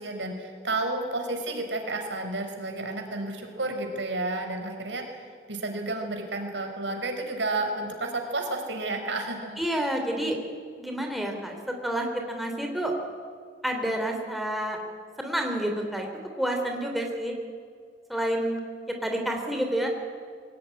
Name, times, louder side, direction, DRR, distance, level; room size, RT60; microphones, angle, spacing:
voice 1, 0.0-9.6, right 2 dB, 90° right, 4 dB, 4.6 m, -31 dB
voice 2, 9.6-10.4 10.8-12.9 13.6-14.8 15.2-16.1 16.4-17.3 18.1-18.6 18.9-19.9, right 1 dB, ahead, 2 dB, 3.1 m, -29 dB
22.5 x 17.5 x 9.8 m, 2.1 s
head